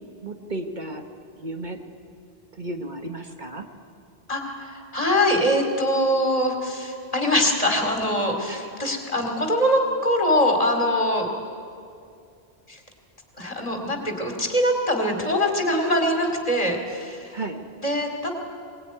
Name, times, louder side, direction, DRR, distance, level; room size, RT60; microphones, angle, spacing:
voice 1, 0.2-1.0 1.4-1.8 2.5-3.7 8.5-8.7 17.3-17.6, right 2 dB, 50° right, 4 dB, 1.4 m, -33 dB
voice 2, 4.3-11.3 12.7-12.8 13.4-17.4 17.8-18.3, left 1 dB, 35° left, 3 dB, 2.9 m, -23 dB
22.5 x 19.0 x 9.5 m, 2.4 s
omnidirectional pair, 1.0 m